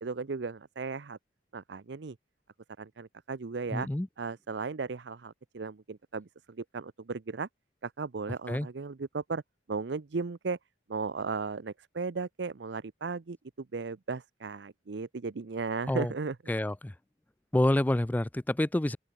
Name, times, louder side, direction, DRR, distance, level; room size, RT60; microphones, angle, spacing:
voice 1, 0.0-1.2 1.5-2.2 2.8-3.9 4.2-6.3 6.6-7.5 7.8-9.4 9.7-10.6 10.9-16.4, right 4 dB, 65° right, 0.6 m, -36 dB
voice 2, 3.7-4.1 8.5-8.7 15.9-16.1 16.5-16.9 17.5-19.0, left 1 dB, 10° left, 0.3 m, -27 dB
open air
head